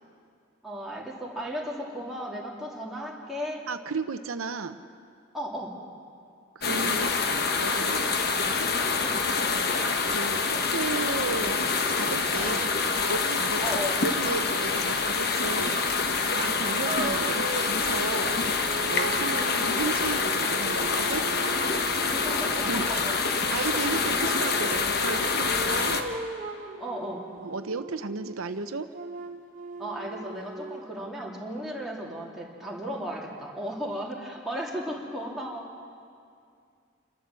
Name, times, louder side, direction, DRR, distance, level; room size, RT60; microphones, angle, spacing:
voice 1, 0.6-3.6 5.3-5.7 9.0-9.2 12.4-12.5 13.6-14.0 16.5-16.6 19.0-19.2 22.1-23.1 23.7-23.8 26.8-27.3 29.8-35.7, equal, ahead, -5 dB, 2.8 m, -35 dB
voice 2, 3.7-4.8 6.5-7.1 7.6-8.0 10.1-11.7 12.0-12.7 13.1-16.0 16.4-21.3 22.6-23.0 23.5-26.0 27.4-28.9, right 4 dB, 90° right, 9 dB, 0.8 m, -34 dB
sound 1, 6.6-26.0, left 4 dB, 50° left, 1.2 m, -26 dB
sound 2, 16.9-22.9 24.1-28.4 28.9-30.8, right 2 dB, 40° right, 1.3 m, -38 dB
28.5 x 13.0 x 7.6 m, 2.3 s
head